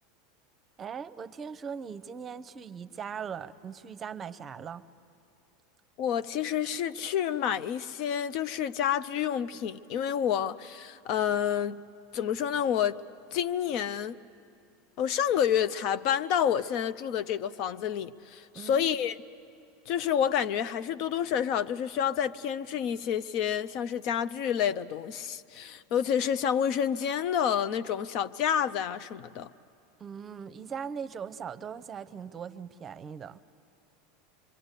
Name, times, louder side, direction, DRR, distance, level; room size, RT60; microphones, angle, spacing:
voice 1, 0.8-4.8 18.5-18.9 30.0-33.4, right 7 dB, 30° right, 0.8 m, -40 dB
voice 2, 6.0-11.8 12.1-13.0 13.3-14.2 15.0-19.2 19.9-29.5, left 9 dB, 55° left, 0.6 m, -29 dB
25.5 x 23.5 x 8.3 m
hypercardioid pair, 95°, 0 cm